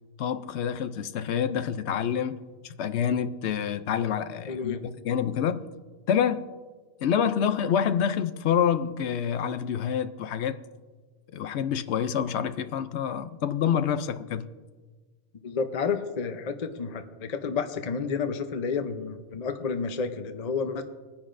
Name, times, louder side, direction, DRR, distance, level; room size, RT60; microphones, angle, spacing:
voice 1, 0.2-2.4 2.6-4.8 5.0-5.6 6.1-6.5 7.0-10.6 11.3-14.5, left 8 dB, 75° left, 0.9 m, -27 dB
voice 2, 4.5-4.8 15.4-20.8, left 5 dB, 40° left, 0.7 m, -30 dB
21.0 x 10.0 x 2.5 m
omnidirectional pair, 1.2 m